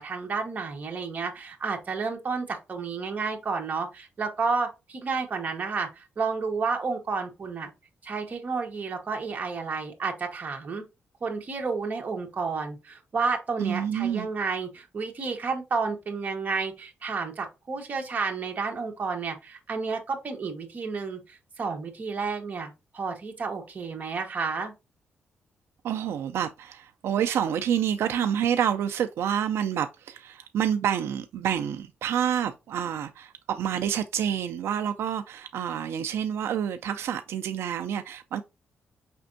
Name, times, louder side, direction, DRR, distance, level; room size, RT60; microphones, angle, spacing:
voice 1, 0.0-7.7 8.0-10.8 11.2-24.7, right 4 dB, 40° right, 1.1 m, -31 dB
voice 2, 13.6-14.3 25.8-38.4, right 9 dB, 85° right, 0.4 m, -28 dB
5.2 x 3.3 x 2.6 m
wide cardioid pair, 145°, 4 cm